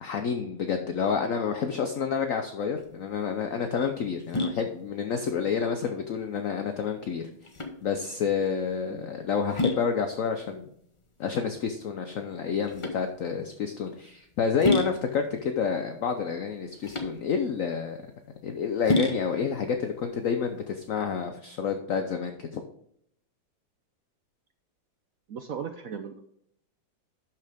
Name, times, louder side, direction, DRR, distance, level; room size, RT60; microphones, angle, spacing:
voice 1, 0.0-7.3 7.8-10.7 11.2-18.0 18.4-22.6, left 6 dB, 65° left, 5 dB, 0.8 m, -29 dB
sound 1, 2.7-21.3, left 2 dB, 40° left, 0.4 m, -34 dB
voice 2, 25.3-26.2, right 7 dB, 75° right, 7 dB, 0.7 m, -37 dB
12.0 x 5.9 x 3.5 m, 0.69 s
omnidirectional pair, 2.2 m